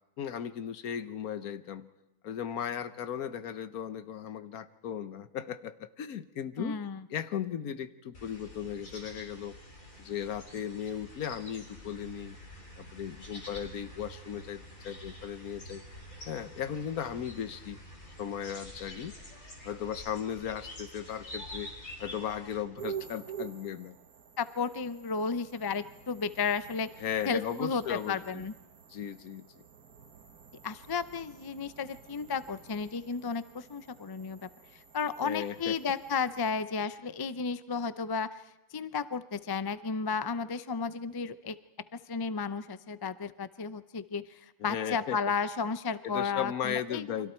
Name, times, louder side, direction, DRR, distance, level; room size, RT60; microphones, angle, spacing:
voice 1, 0.2-1.9 2.2-6.8 7.1-9.6 10.0-12.4 12.8-15.8 16.2-17.8 18.2-19.2 19.6-21.7 22.0-24.0 27.0-28.4 28.9-29.5 35.2-35.8 44.6-45.2 46.0-47.3, left 9 dB, 80° left, 12 dB, 1.4 m, -36 dB
voice 2, 6.6-7.0 24.4-26.9 27.3-28.5 30.6-34.5 34.9-38.4 38.7-41.6 41.9-47.2, left 5 dB, 30° left, 13 dB, 0.4 m, -33 dB
sound 1, 8.1-22.6, left 1 dB, 65° left, 4.0 m, -47 dB
sound 2, 22.8-36.5, right 8 dB, 85° right, 1.6 m, -48 dB
29.5 x 24.0 x 4.5 m, 1.0 s
omnidirectional pair, 1.5 m